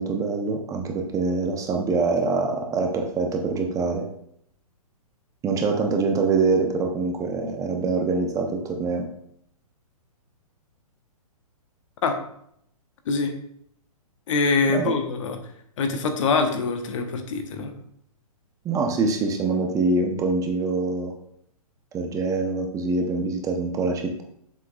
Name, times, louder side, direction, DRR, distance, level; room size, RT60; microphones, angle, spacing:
voice 1, 0.0-4.0 5.4-9.1 14.7-14.9 18.6-21.1 21.9-24.2, right 3 dB, 15° right, 3 dB, 0.7 m, -24 dB
voice 2, 14.3-15.4 15.8-17.7, left 4 dB, 55° left, 6 dB, 1.1 m, -24 dB
7.3 x 6.0 x 2.4 m, 0.71 s
hypercardioid pair, 130°, 19 cm